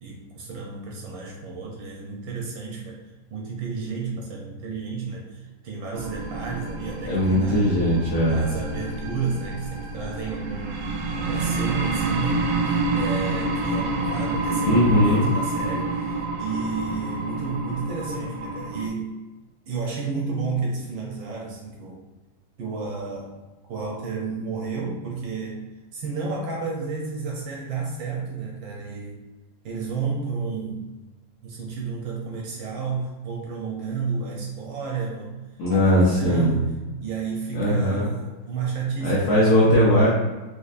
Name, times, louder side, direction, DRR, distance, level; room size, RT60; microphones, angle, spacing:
voice 1, 0.0-3.0 3.3-7.7 8.2-12.4 12.9-19.2 19.7-22.0 22.6-23.4 23.7-25.6 25.9-29.2 29.6-30.9 31.4-35.3 35.7-36.7 37.0-39.7, right 4 dB, 75° right, -2 dB, 1.2 m, -31 dB
sound 1, 5.9-18.9, right 2 dB, 90° right, 0.9 m, -28 dB
voice 2, 7.1-8.4 11.3-11.5 12.6-12.8 14.6-15.3 35.6-36.6 37.5-38.1 39.0-40.1, equal, 60° left, -7 dB, 1.1 m, -19 dB
4.4 x 2.5 x 2.4 m, 1.2 s
omnidirectional pair, 2.4 m